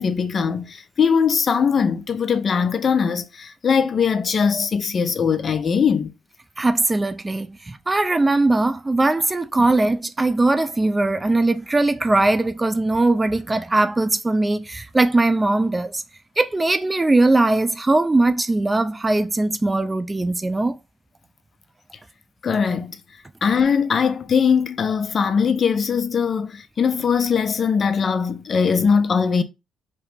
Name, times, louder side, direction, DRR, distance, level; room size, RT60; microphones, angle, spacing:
voice 1, 0.0-6.1 22.4-23.0 23.4-29.4, left 6 dB, 45° left, 0.4 m, -20 dB
voice 2, 6.6-16.0 16.4-20.7, right 2 dB, 20° right, 0.4 m, -20 dB
3.0 x 2.9 x 3.3 m
cardioid pair, 90°, 0 cm